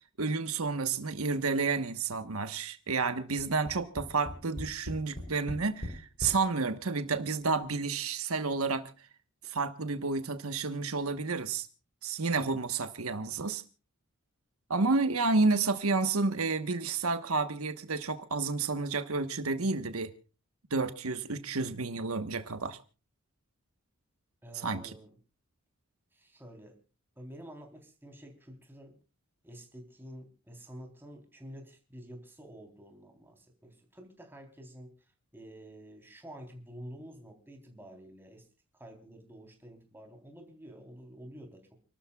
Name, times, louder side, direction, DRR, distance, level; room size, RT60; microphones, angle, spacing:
voice 1, 0.2-8.9 9.4-11.7 12.0-13.6 14.7-20.1 20.7-22.8 24.6-24.8, right 4 dB, 90° right, 1.2 m, -30 dB
Tap, 3.4-6.4 7.2-7.3 7.6-7.7, left 1 dB, 50° left, 6.5 m, -40 dB
voice 2, 24.4-25.2 26.1-26.8 27.2-28.9 29.4-34.9 35.3-38.5 38.7-41.8, equal, 10° right, 3.6 m, -49 dB
29.5 x 13.0 x 2.3 m
head